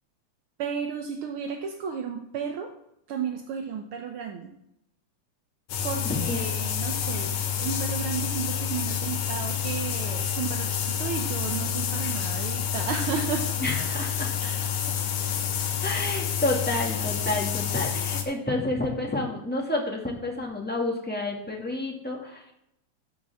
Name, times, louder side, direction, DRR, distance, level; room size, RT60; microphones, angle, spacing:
voice 1, 0.6-2.7 3.1-4.5 5.8-13.6 14.4-14.6 15.5-15.8, right 7 dB, 65° right, 3 dB, 1.3 m, -33 dB
sound 1, 5.7-18.2, left 8 dB, 65° left, 2.1 m, -29 dB
voice 2, 6.1-6.5 13.6-14.3 15.8-22.4, left 2 dB, 5° left, -2 dB, 1.5 m, -29 dB
13.0 x 8.7 x 3.6 m, 0.79 s
omnidirectional pair, 3.4 m